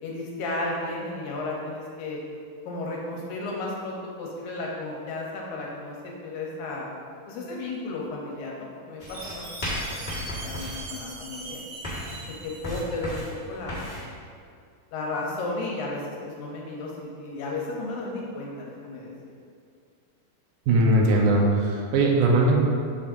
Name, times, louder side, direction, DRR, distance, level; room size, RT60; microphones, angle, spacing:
voice 1, 0.0-2.2 2.7-6.9 7.3-11.6 12.4-13.2 13.5-13.9 14.9-19.1, left 2 dB, 75° left, -2 dB, 2.1 m, -34 dB
sound 1, 9.0-14.0, left 1 dB, 30° left, 1.0 m, -35 dB
Chime, 9.1-13.2, right 2 dB, 60° right, 2.2 m, -40 dB
voice 2, 20.7-22.6, right 2 dB, 90° right, 0 dB, 2.4 m, -20 dB
7.4 x 6.1 x 2.6 m, 2.3 s
omnidirectional pair, 3.7 m